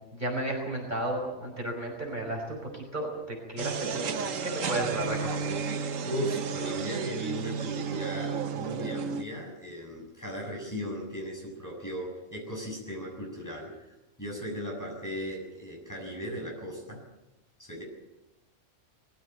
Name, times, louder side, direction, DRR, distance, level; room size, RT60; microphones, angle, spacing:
voice 1, 0.1-5.6, right 1 dB, 35° right, 0 dB, 5.3 m, -33 dB
sound 1, 3.6-9.2, right 6 dB, 85° right, 1.4 m, -32 dB
voice 2, 6.0-13.8 14.2-17.0 17.6-17.8, equal, 15° left, -1 dB, 7.1 m, -37 dB
21.5 x 15.5 x 9.3 m, 0.97 s
omnidirectional pair, 1.3 m